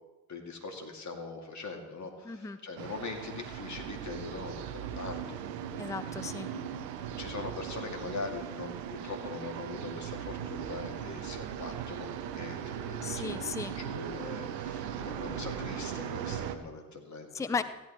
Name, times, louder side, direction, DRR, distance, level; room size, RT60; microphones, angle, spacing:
voice 1, 0.3-5.4 7.2-17.6, left 3 dB, 35° left, 1 dB, 2.4 m, -42 dB
voice 2, 2.2-2.6 5.8-6.5 13.0-13.7 17.3-17.6, left 5 dB, 5° left, 13 dB, 0.5 m, -35 dB
sound 1, 2.8-16.6, right 9 dB, 80° right, 0.8 m, -38 dB
15.5 x 11.0 x 3.1 m, 1.1 s
figure-of-eight pair, 40°, 49 cm